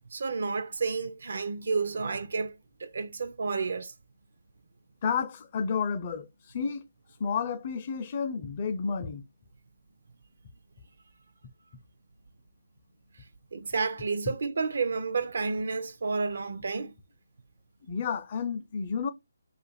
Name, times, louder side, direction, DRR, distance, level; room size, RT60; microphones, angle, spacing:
voice 1, 0.1-3.9 13.5-16.9, right 4 dB, 65° right, 0.4 m, -31 dB
voice 2, 5.0-6.3 6.5-6.8 7.2-9.2 17.9-19.1, left 6 dB, 35° left, 0.5 m, -31 dB
2.5 x 2.4 x 4.1 m
hypercardioid pair, 160°, 0 cm